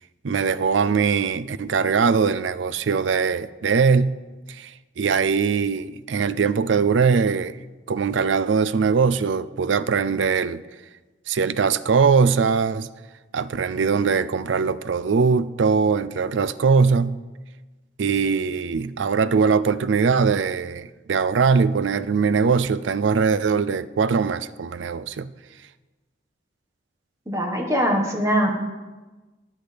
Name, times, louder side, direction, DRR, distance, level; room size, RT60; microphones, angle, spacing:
voice 1, 0.2-4.1 4.5-4.7 5.0-7.6 7.9-10.6 11.3-12.9 13.3-17.2 18.0-25.3, right 5 dB, 80° right, 15 dB, 0.4 m, -21 dB
voice 2, 27.3-28.6, equal, 15° right, 1 dB, 1.4 m, -22 dB
19.5 x 8.2 x 3.4 m, 1.2 s
head